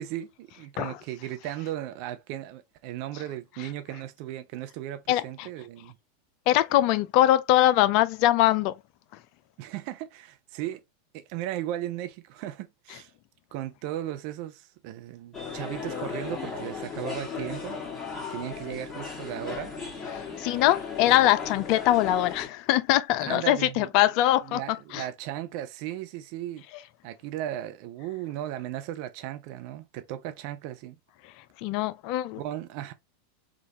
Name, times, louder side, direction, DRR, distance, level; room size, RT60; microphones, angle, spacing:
voice 1, 0.0-6.0 9.6-10.8 11.1-13.1 13.5-17.8 18.3-19.7 23.2-23.9 24.4-26.6 27.0-31.0 32.4-32.9, right 13 dB, 50° right, 0.6 m, -36 dB
voice 2, 5.1-5.5 6.5-8.8 20.1-24.6 24.9-25.0 31.6-32.4, left 14 dB, 50° left, 0.3 m, -22 dB
sound 1, 15.3-22.5, left 5 dB, 20° left, 1.6 m, -36 dB
3.7 x 2.4 x 2.7 m
figure-of-eight pair, 90°, 0 cm